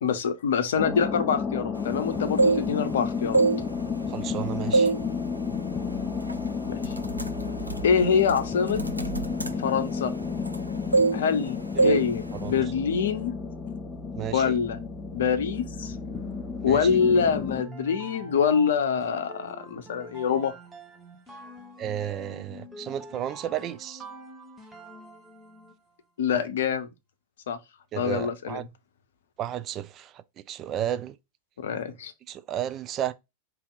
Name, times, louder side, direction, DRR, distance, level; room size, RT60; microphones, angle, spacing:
voice 1, 0.0-3.4 6.7-7.0 7.8-8.8 9.6-10.1 11.1-13.3 14.3-14.8 15.1-15.9 16.6-20.5 26.2-26.9 27.5-27.6 28.0-28.6 31.6-32.1, left 6 dB, 60° left, 0.7 m, -25 dB
sound 1, 0.8-17.6, left 5 dB, 15° left, 0.9 m, -32 dB
sound 2, 2.2-2.9 3.3-4.3 4.7-5.1 5.4-5.7 6.3-6.5 6.8-10.6 10.9-11.5 11.8-12.1 12.3-12.6, right 3 dB, 85° right, 0.5 m, -24 dB
voice 2, 4.1-4.9 11.7-12.0 12.3-12.6 14.1-14.5 16.6-16.9 21.8-24.0 27.9-28.6 29.4-31.2 32.3-33.1, right 11 dB, 30° right, 0.4 m, -33 dB
sound 3, 16.7-25.9, right 2 dB, 10° right, 1.0 m, -45 dB
3.5 x 2.8 x 3.9 m
figure-of-eight pair, 90°, 0 cm